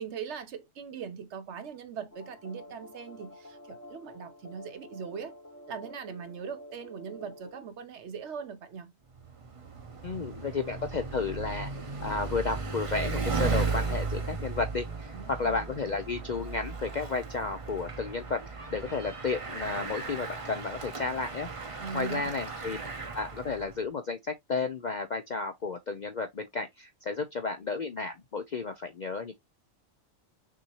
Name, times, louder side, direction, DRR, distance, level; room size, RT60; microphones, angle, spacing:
voice 1, 0.0-5.3 5.7-8.9 15.1-15.5 21.8-22.3 22.7-22.8, right 6 dB, 65° right, 1.0 m, -40 dB
sound 1, 2.1-7.6, left 1 dB, 15° left, 0.8 m, -49 dB
Bicycle, 9.1-23.8, right 4 dB, 30° right, 0.7 m, -36 dB
voice 2, 10.0-11.7 12.0-21.5 21.9-22.8 23.1-29.3, left 4 dB, 55° left, 0.5 m, -32 dB
6.1 x 2.8 x 2.9 m
omnidirectional pair, 1.4 m